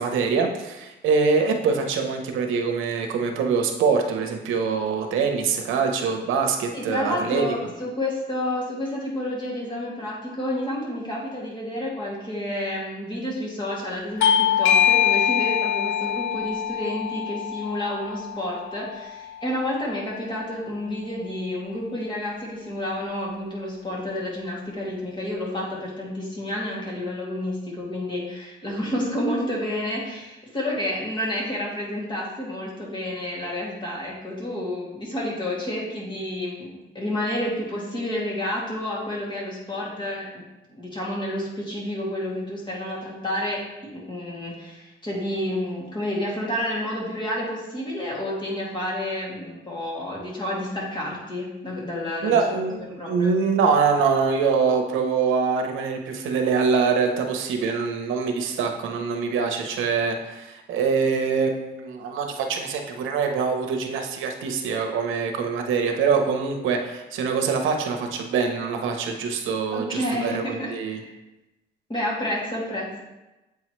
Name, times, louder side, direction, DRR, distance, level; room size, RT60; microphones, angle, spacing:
voice 1, 0.0-7.4 52.2-71.0, right 5 dB, 85° right, 3 dB, 1.0 m, -24 dB
voice 2, 6.7-40.4 40.7-43.7 43.9-52.4 53.0-53.4 69.7-71.1 71.9-73.0, left 1 dB, 25° left, -5 dB, 2.4 m, -30 dB
Bell / Doorbell, 14.2-19.4, left 9 dB, 75° left, 0.4 m, -23 dB
8.1 x 4.7 x 3.2 m, 1.0 s
cardioid pair, 90°, 20 cm